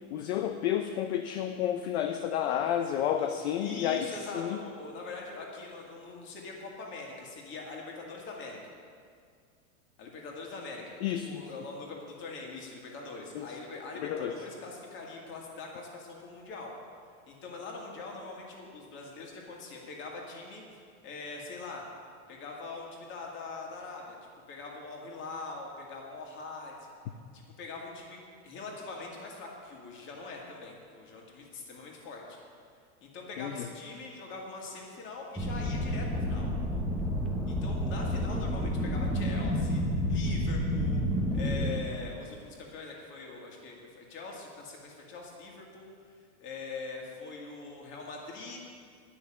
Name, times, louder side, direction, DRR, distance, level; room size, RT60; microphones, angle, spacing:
voice 1, 0.1-4.1 4.3-4.6 11.0-11.4 13.3-13.5 14.0-14.4 33.4-33.7, left 10 dB, 50° left, 6 dB, 0.7 m, -30 dB
voice 2, 3.6-8.6 10.0-16.7 17.3-20.6 21.0-21.8 22.3-24.2 24.5-26.7 27.3-28.2 28.4-32.4 33.0-36.5 37.5-39.8 40.1-41.0 41.3-45.9 46.4-48.6, left 3 dB, 25° left, 0 dB, 2.0 m, -42 dB
sound 1, 35.4-41.7, equal, ahead, 0.7 m, -30 dB
10.5 x 6.2 x 8.8 m, 2.2 s
supercardioid pair, 160°, 43 cm